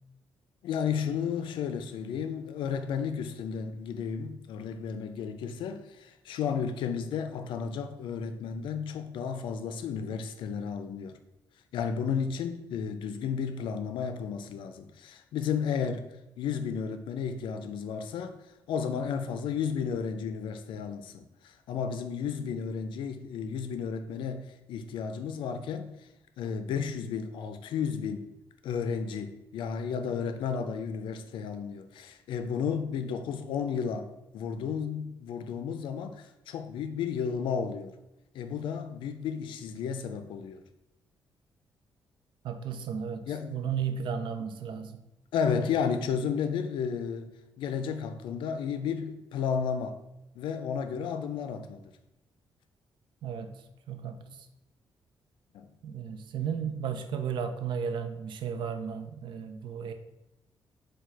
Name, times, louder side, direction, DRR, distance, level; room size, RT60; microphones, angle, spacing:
voice 1, 0.6-11.2 11.7-16.0 16.4-18.4 18.7-25.9 26.4-28.3 28.6-37.9 38.3-40.6 43.3-43.5 45.3-47.3 47.6-50.0 50.4-51.9 55.5-55.7, left 6 dB, 90° left, 0.4 m, -33 dB
voice 2, 42.4-45.0 53.2-53.5 53.9-54.4 55.8-59.9, right 7 dB, 80° right, 0.4 m, -34 dB
4.5 x 2.3 x 4.5 m
cardioid pair, 100°, 8 cm